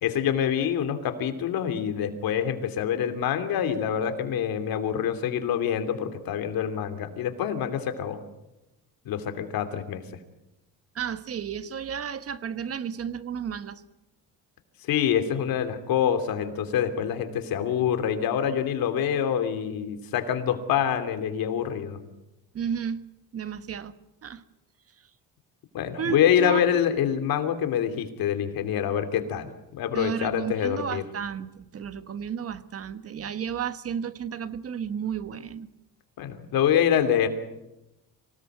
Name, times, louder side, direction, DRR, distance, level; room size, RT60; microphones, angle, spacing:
voice 1, 0.0-8.2 9.0-10.0 14.8-22.0 25.7-31.0 36.2-37.3, left 9 dB, 75° left, 3.0 m, -26 dB
voice 2, 10.9-13.8 22.5-23.0 23.3-23.9 24.2-24.4 26.0-26.7 29.9-35.7, right 7 dB, 40° right, 1.4 m, -32 dB
26.0 x 18.0 x 8.0 m
cardioid pair, 140°, 35 cm